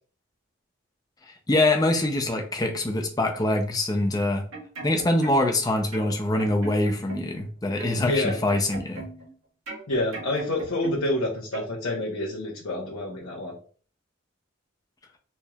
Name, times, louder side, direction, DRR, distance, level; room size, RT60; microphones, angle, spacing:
voice 1, 1.5-4.4 4.8-9.0, left 1 dB, 20° left, 3 dB, 0.5 m, -24 dB
sound 1, 4.3-5.6 5.9-7.4 7.8-9.3 9.7-11.2 11.5-11.7, right 2 dB, 90° right, 1.6 m, -39 dB
voice 2, 8.0-8.4 9.9-13.5, left 1 dB, 85° left, -4 dB, 0.9 m, -28 dB
4.3 x 3.1 x 2.3 m, 0.41 s
head